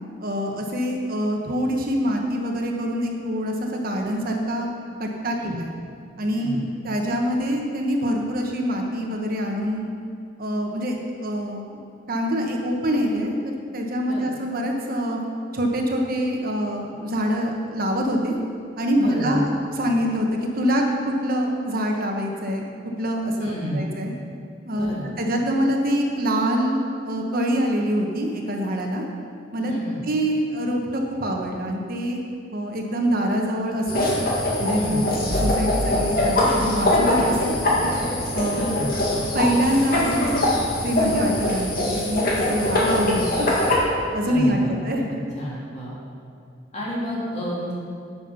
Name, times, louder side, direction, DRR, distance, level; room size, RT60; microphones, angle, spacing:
voice 1, 0.2-4.7 5.0-5.7 6.2-6.6 6.8-9.9 10.4-11.7 12.1-15.2 15.5-18.4 18.8-19.5 19.8-20.3 20.6-22.6 23.0-24.1 24.6-29.1 29.5-29.7 30.0-32.2 32.5-34.1 34.6-35.0 35.4-37.6 38.3-38.7 39.3-40.4 40.8-43.5 44.1-45.1, equal, 50° right, 1 dB, 1.2 m, -25 dB
voice 2, 19.0-19.4 23.4-23.8 24.7-25.1 29.7-30.0 34.7-35.0 38.5-38.9 44.2-45.9 46.7-47.8, equal, 35° left, -6 dB, 3.3 m, -31 dB
sound 1, 33.9-43.7, left 1 dB, 50° left, 2.2 m, -23 dB
sound 2, 35.3-39.2, equal, 15° left, 0.9 m, -32 dB
10.5 x 8.7 x 5.6 m, 2.3 s
head